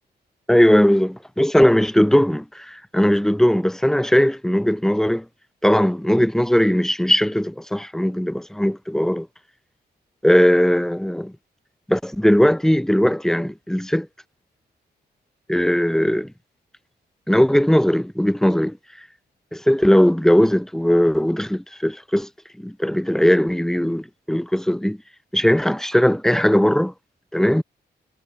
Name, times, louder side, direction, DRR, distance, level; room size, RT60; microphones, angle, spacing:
voice 1, 0.5-5.3 5.6-9.3 10.2-11.3 11.9-14.1 15.5-16.3 17.3-18.8 19.5-22.3 22.6-25.0 25.3-26.9 27.3-27.6, equal, ahead, 2.2 m, -18 dB
wide cardioid pair, 125°, 18 cm